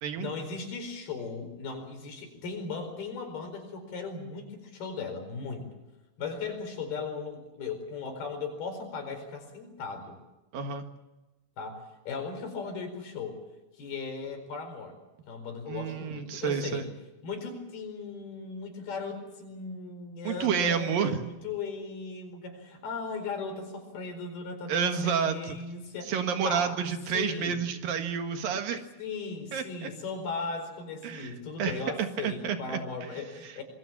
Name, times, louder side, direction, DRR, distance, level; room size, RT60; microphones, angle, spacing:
voice 1, 0.2-5.7 6.2-10.2 11.6-13.4 13.7-15.0 15.3-16.9 17.2-26.1 26.4-26.8 27.1-27.6 29.0-33.6, left 4 dB, 90° left, 5 dB, 6.5 m, -37 dB
voice 2, 10.5-10.9 15.7-16.8 20.2-21.2 24.7-25.6 26.1-28.8 29.5-29.9 31.0-31.3 31.6-32.8, right 7 dB, 70° right, 7 dB, 3.3 m, -30 dB
26.0 x 21.5 x 7.3 m, 1.1 s
omnidirectional pair, 4.3 m